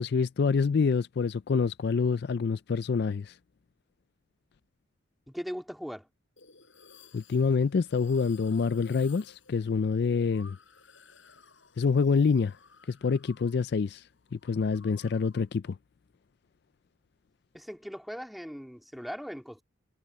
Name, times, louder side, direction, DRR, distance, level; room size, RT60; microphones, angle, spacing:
voice 1, 0.0-3.4 7.1-10.6 11.8-12.6 12.9-15.8, left 5 dB, 55° left, 0.4 m, -27 dB
voice 2, 5.3-6.1 17.5-19.6, equal, ahead, 2.4 m, -39 dB
sound 1, 6.4-13.8 14.0-15.6, left 5 dB, 70° left, 4.9 m, -56 dB
head